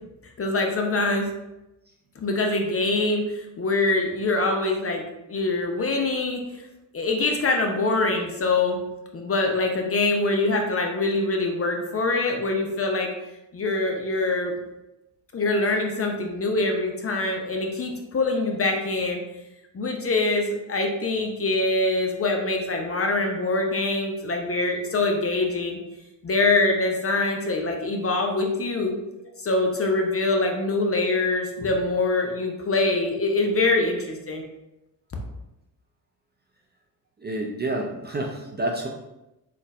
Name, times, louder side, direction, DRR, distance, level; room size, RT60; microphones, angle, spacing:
voice 1, 0.4-1.3 2.2-6.4 6.9-8.8 9.1-13.1 13.5-14.6 15.3-19.2 19.7-25.8 26.2-28.9 29.4-34.4, left 2 dB, 30° left, 2 dB, 0.7 m, -24 dB
voice 2, 37.2-38.9, right 1 dB, 20° right, 0 dB, 0.5 m, -29 dB
4.0 x 2.4 x 3.1 m, 0.94 s
hypercardioid pair, 50°, 50 cm